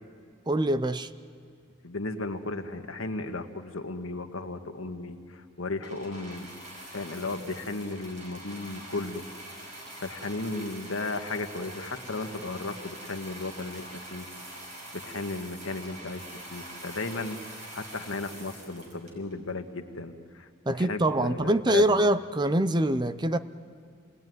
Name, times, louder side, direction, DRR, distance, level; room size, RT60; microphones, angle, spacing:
voice 1, 0.5-1.1 20.7-23.4, right 1 dB, 20° right, 0.6 m, -24 dB
voice 2, 1.8-6.5 6.9-9.2 9.6-14.3 14.9-22.1, left 3 dB, 80° left, 1.7 m, -35 dB
sound 1, 5.8-19.5 20.3-20.4, right 1 dB, 35° right, 5.7 m, -44 dB
28.5 x 19.5 x 9.4 m
head